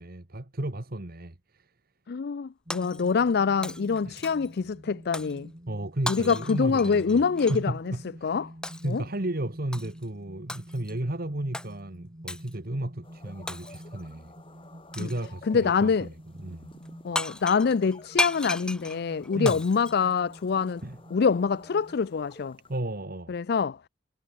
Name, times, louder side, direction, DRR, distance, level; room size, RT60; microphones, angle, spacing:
voice 1, 0.0-1.7 4.1-4.2 5.7-7.2 7.5-8.4 8.8-14.3 15.0-16.7 19.3-19.6 20.8-21.0 22.7-23.4, right 1 dB, 55° right, 1.8 m, -33 dB
voice 2, 2.1-5.5 6.1-7.9 8.2-8.5 8.8-9.0 15.0-15.1 15.5-16.1 17.0-20.8 21.1-22.6 23.3-23.9, left 5 dB, 60° left, 0.4 m, -25 dB
Shatter, 2.7-3.4 3.6-4.6 5.1-5.4 6.1-7.6 8.6-9.0 9.7-10.1 10.5-11.0 11.5-11.7 12.3-12.6 13.5-14.0 14.9-15.3 16.9-17.0 17.2-20.7, left 1 dB, 5° left, 0.9 m, -35 dB
sound 1, 2.7-22.0, equal, 30° right, 3.5 m, -48 dB
sound 2, 13.0-22.8, left 2 dB, 30° left, 7.2 m, -53 dB
head